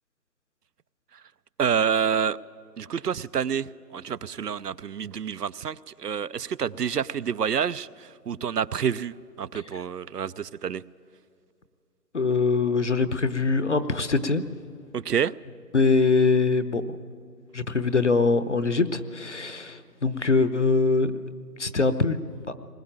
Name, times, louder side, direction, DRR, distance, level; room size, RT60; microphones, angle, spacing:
voice 1, 1.6-2.4 2.8-10.8 14.9-15.3, right 7 dB, 75° right, 19 dB, 0.6 m, -28 dB
voice 2, 12.1-14.4 15.7-16.8 17.5-21.1 21.6-22.2 22.5-22.6, left 3 dB, 45° left, 12 dB, 0.9 m, -23 dB
20.5 x 19.0 x 8.9 m, 2.3 s
figure-of-eight pair, 170°, 49 cm